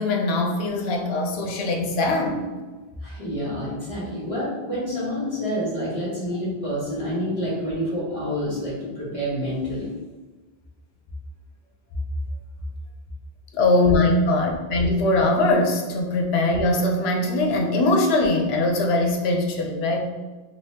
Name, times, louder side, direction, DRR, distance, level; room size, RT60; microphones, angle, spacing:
voice 1, 0.0-2.4 13.5-20.0, left 2 dB, 75° left, 2 dB, 0.9 m, -21 dB
voice 2, 3.0-9.9, equal, 35° left, -7 dB, 1.2 m, -28 dB
4.0 x 2.9 x 2.7 m, 1.3 s
omnidirectional pair, 1.1 m